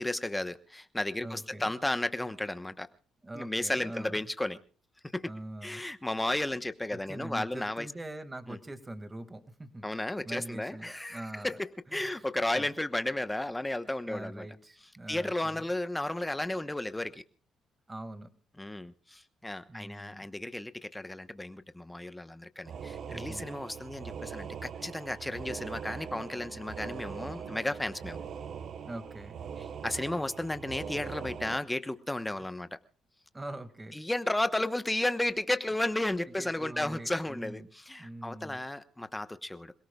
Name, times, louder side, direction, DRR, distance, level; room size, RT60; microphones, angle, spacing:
voice 1, 0.0-2.9 3.3-4.6 5.1-5.3 5.6-7.9 8.5-8.6 9.8-14.4 15.1-17.2 18.6-28.2 29.8-32.8 33.9-39.7, left 1 dB, 10° left, 11 dB, 1.0 m, -33 dB
voice 2, 1.2-1.7 3.2-4.3 5.2-5.8 6.9-9.9 10.2-11.6 11.9-12.3 12.5-12.7 14.1-15.7 17.9-18.3 19.7-20.3 23.1-23.5 28.8-29.4 33.3-34.0 36.2-37.7 38.0-38.6, right 1 dB, 20° right, 10 dB, 2.0 m, -43 dB
sound 1, 22.6-31.6, right 7 dB, 60° right, 1.0 m, -41 dB
27.5 x 17.5 x 2.3 m, 0.40 s
cardioid pair, 90°, 0 cm